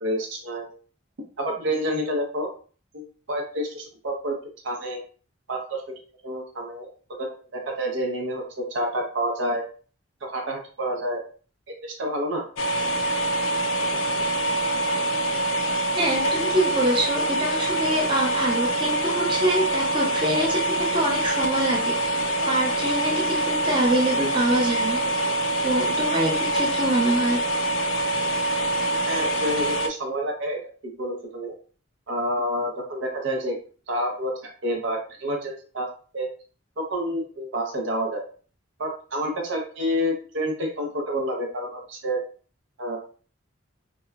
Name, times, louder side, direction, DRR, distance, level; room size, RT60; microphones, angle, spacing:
voice 1, 0.0-0.7 1.4-2.5 2.9-4.4 4.6-5.0 5.5-6.0 6.2-9.6 10.2-11.2 11.8-12.5 29.1-31.5 32.1-33.5 33.9-35.9 36.1-36.3 36.8-38.2 38.8-42.2 42.8-43.0, equal, 70° right, 1 dB, 0.7 m, -28 dB
sound 1, 12.6-29.9, right 1 dB, 85° left, 0.4 m, -25 dB
voice 2, 15.9-21.9 22.4-25.0 25.6-27.4, right 1 dB, 25° right, -3 dB, 0.6 m, -25 dB
2.8 x 2.2 x 2.3 m, 0.40 s
head